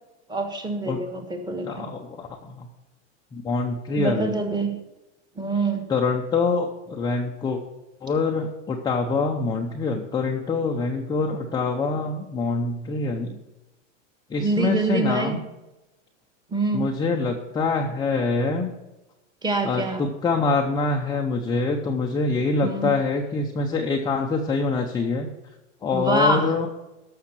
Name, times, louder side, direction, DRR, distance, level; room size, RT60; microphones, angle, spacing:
voice 1, 0.3-1.9 3.9-4.8 5.3-5.9 14.4-15.4 16.5-16.9 19.4-20.1 22.6-22.9 25.9-26.5, right 2 dB, 10° right, 5 dB, 1.4 m, -25 dB
voice 2, 1.7-2.7 3.3-4.3 5.9-7.6 8.0-13.4 14.3-15.4 16.7-18.7 19.6-25.3 25.8-26.7, left 3 dB, 10° left, 1 dB, 0.7 m, -25 dB
13.0 x 6.4 x 5.9 m, 1.0 s
supercardioid pair, 145°, 36 cm